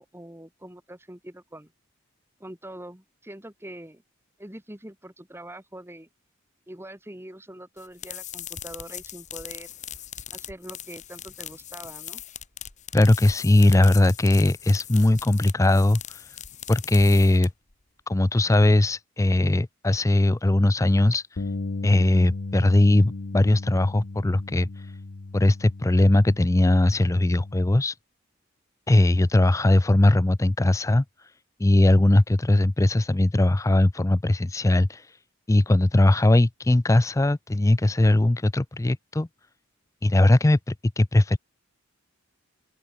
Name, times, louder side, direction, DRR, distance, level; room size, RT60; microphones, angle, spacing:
voice 1, 0.0-1.7 2.4-4.0 4.4-6.1 6.7-9.7 10.3-12.2, right 1 dB, 10° right, 2.0 m, -43 dB
sound 1, 7.8-17.7, left 10 dB, 35° left, 1.6 m, -40 dB
voice 2, 12.9-16.4 16.7-17.5 18.1-21.4 21.8-24.9 25.3-28.0 28.9-31.3 31.6-35.2 35.5-39.3 40.0-41.4, left 1 dB, 15° left, 0.4 m, -20 dB
Bass guitar, 21.4-27.6, left 3 dB, 50° left, 0.7 m, -35 dB
open air
head